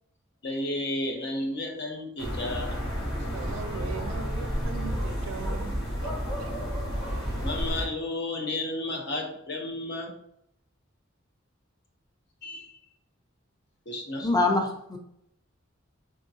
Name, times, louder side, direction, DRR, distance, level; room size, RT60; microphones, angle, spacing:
voice 1, 0.4-2.8 6.6-6.7 7.4-10.1 12.4-12.7 13.9-14.3, left 1 dB, 55° left, 2 dB, 0.8 m, -32 dB
sound 1, 2.2-7.9, equal, 70° left, 1.3 m, -31 dB
voice 2, 3.3-6.1 6.4-6.5, right 6 dB, 70° right, 9 dB, 0.4 m, -40 dB
voice 3, 14.2-15.0, left 2 dB, 20° left, 3 dB, 0.6 m, -24 dB
3.7 x 3.5 x 2.7 m, 0.75 s
head